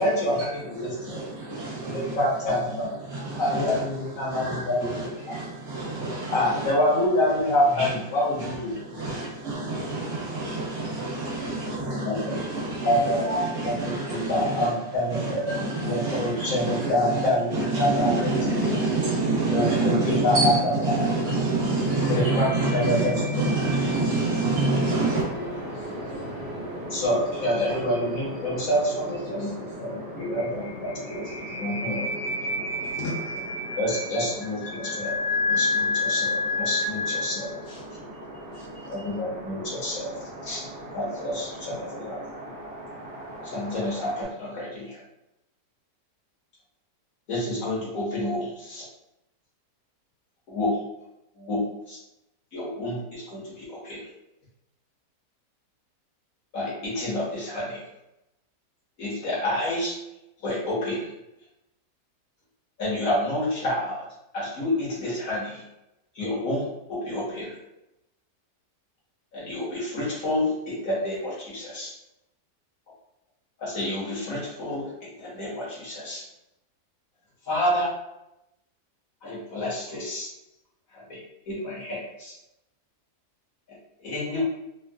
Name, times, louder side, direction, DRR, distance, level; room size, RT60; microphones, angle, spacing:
voice 1, 0.0-1.2 1.9-2.9 3.4-4.9 6.3-8.7 12.0-12.2 12.8-18.3 19.5-20.4 22.1-22.5 22.7-23.2 26.9-31.3 31.6-32.1 33.8-35.2 35.6-37.5 38.9-40.1 40.4-40.6 40.9-42.2 43.4-45.0 47.3-48.8 50.5-50.8 51.4-51.6 51.9-52.0 52.5-54.0 56.5-57.8 59.0-60.0 60.4-61.0 62.8-64.0 64.3-65.6 66.1-67.5 69.3-71.9 73.6-74.9 75.2-76.2 77.5-77.9 79.2-80.3 80.9-81.2 81.5-82.3 84.0-84.4, left 1 dB, 55° left, 1.4 m, -27 dB
voice 2, 0.5-6.7 7.7-25.2, right 2 dB, 65° right, 1.3 m, -28 dB
voice 3, 19.1-19.7 21.9-24.2 25.7-26.9 27.7-28.0 29.6-29.7 30.0-30.1 30.6-37.8 38.5-38.6, left 3 dB, 75° left, 1.4 m, -31 dB
sound 1, 24.7-44.2, equal, 15° right, 0.8 m, -39 dB
3.6 x 2.3 x 2.2 m
omnidirectional pair, 1.8 m